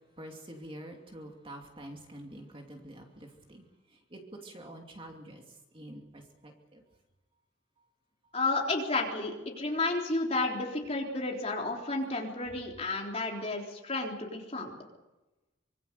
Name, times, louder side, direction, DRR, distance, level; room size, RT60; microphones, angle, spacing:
voice 1, 0.2-5.4 5.7-6.8, right 1 dB, 25° right, 2 dB, 2.7 m, -47 dB
voice 2, 8.3-14.7, left 2 dB, 30° left, 0 dB, 3.7 m, -32 dB
25.0 x 22.5 x 6.9 m, 1.1 s
head